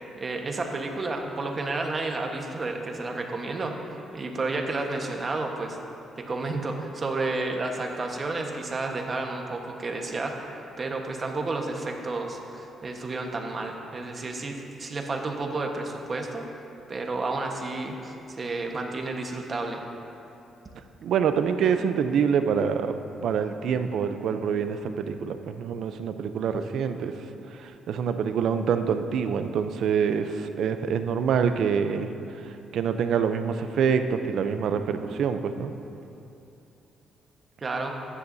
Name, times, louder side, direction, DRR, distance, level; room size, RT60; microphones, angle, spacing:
voice 1, 0.2-5.8 6.2-16.6 16.9-19.8 37.6-37.9, right 3 dB, 35° right, 2 dB, 1.3 m, -31 dB
voice 2, 21.0-22.9 23.2-27.1 27.6-32.1 32.7-35.7, right 7 dB, 70° right, 8 dB, 0.6 m, -26 dB
15.0 x 10.0 x 2.7 m, 2.8 s
cardioid pair, 90°, 0 cm